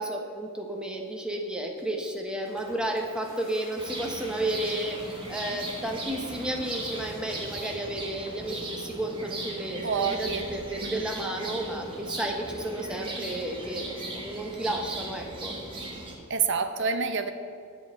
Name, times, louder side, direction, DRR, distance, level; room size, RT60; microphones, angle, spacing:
voice 1, 0.0-15.6, right 1 dB, 5° right, 1 dB, 0.9 m, -32 dB
Toilet flush, 1.8-14.6, left 1 dB, 40° left, 2.2 m, -53 dB
sound 1, 3.8-16.2, right 2 dB, 25° right, 1.3 m, -38 dB
voice 2, 9.8-10.4 10.8-11.1 16.3-17.3, right 5 dB, 55° right, 7 dB, 0.7 m, -27 dB
9.6 x 5.3 x 7.8 m, 2.5 s
head